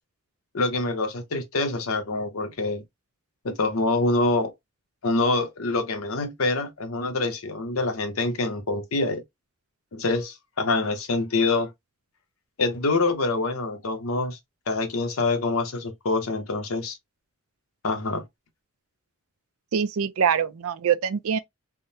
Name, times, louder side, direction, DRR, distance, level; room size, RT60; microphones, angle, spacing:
voice 1, 0.5-2.8 3.4-4.5 5.0-9.2 9.9-11.7 12.6-14.4 14.7-17.0 17.8-18.2, left 3 dB, 80° left, 0.8 m, -25 dB
voice 2, 19.7-21.4, right 7 dB, 85° right, 0.4 m, -24 dB
3.6 x 2.1 x 2.6 m
head